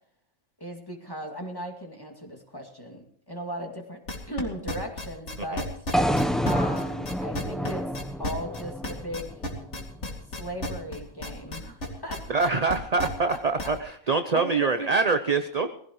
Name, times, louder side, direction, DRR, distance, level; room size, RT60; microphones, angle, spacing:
voice 1, 0.6-4.0 4.3-5.7 6.4-7.9 8.2-9.3 10.4-12.5 13.0-13.7 14.1-14.9, equal, 15° left, 2 dB, 2.2 m, -37 dB
sound 1, 4.1-13.8, left 1 dB, 55° left, 2.8 m, -33 dB
sound 2, 5.9-10.1, equal, ahead, 0.4 m, -28 dB
voice 2, 12.3-15.7, right 4 dB, 40° right, 8 dB, 0.6 m, -25 dB
20.0 x 16.0 x 3.1 m, 0.64 s
omnidirectional pair, 1.5 m